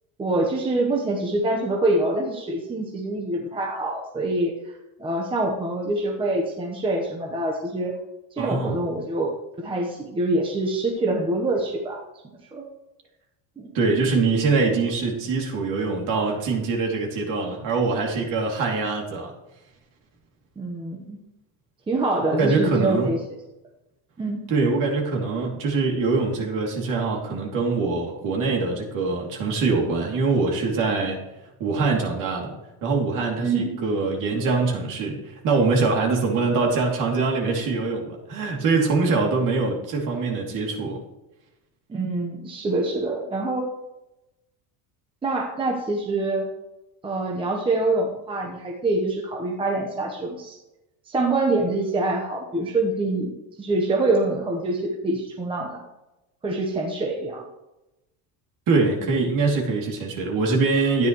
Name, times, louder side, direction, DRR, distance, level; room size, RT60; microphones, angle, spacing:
voice 1, 0.2-4.5 5.0-8.0 8.3-12.0 12.5-12.6 13.6-13.7 20.6-21.2 21.9-23.4 24.2-24.5 33.4-33.7 41.9-43.7 45.2-46.5 47.0-50.6 51.1-53.3 53.6-55.8 56.4-57.4, right 2 dB, 10° right, 0 dB, 0.9 m, -25 dB
voice 2, 8.4-8.8 13.7-19.3 22.4-23.1 24.5-31.2 31.6-32.5 32.8-41.0 58.7-61.1, right 4 dB, 45° right, 0 dB, 2.7 m, -23 dB
13.5 x 9.9 x 3.1 m, 0.96 s
cardioid pair, 160°, 43 cm